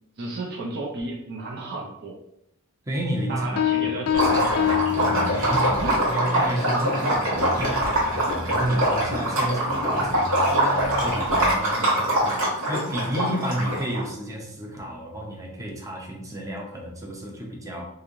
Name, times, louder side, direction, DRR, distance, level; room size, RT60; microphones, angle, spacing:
voice 1, 0.2-2.2 3.3-4.7 5.8-6.0, right 2 dB, 50° right, -3 dB, 0.6 m, -33 dB
voice 2, 2.9-4.5 5.0-10.3 10.6-17.9, right 1 dB, 15° right, -1 dB, 0.7 m, -31 dB
sound 1, 3.6-6.0, left 12 dB, 80° left, 0.3 m, -25 dB
sound 2, 4.1-11.5, left 1 dB, 10° left, 0.4 m, -36 dB
Liquid, 4.1-14.0, right 1 dB, 75° right, 1.3 m, -23 dB
3.1 x 2.6 x 3.8 m, 0.77 s
head